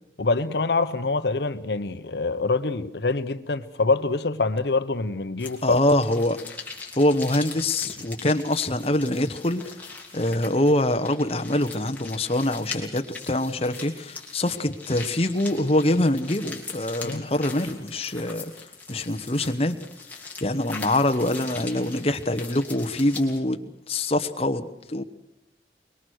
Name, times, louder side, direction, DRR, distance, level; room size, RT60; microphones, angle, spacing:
voice 1, 0.2-5.8 17.0-17.3, left 3 dB, 70° left, 11 dB, 0.9 m, -25 dB
sound 1, 5.4-23.4, left 4 dB, 10° left, 3.0 m, -41 dB
voice 2, 5.6-6.4 6.9-9.7 10.1-18.5 18.9-19.8 20.4-25.0, left 1 dB, 35° left, 8 dB, 1.1 m, -24 dB
23.0 x 22.5 x 6.4 m, 0.83 s
head